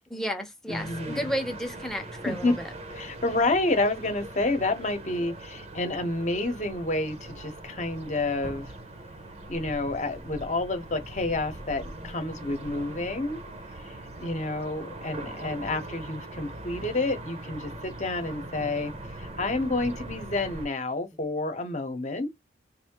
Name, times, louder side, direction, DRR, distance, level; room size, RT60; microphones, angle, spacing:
voice 1, 0.1-2.7, equal, ahead, 0.9 m, -32 dB
voice 2, 0.7-1.3 2.2-2.6 2.9-8.7 9.5-13.4 13.8-13.9 14.2-22.3, left 2 dB, 40° left, 1.0 m, -29 dB
sound 1, 0.7-20.7, right 2 dB, 35° right, 0.9 m, -41 dB
4.2 x 2.7 x 2.9 m
head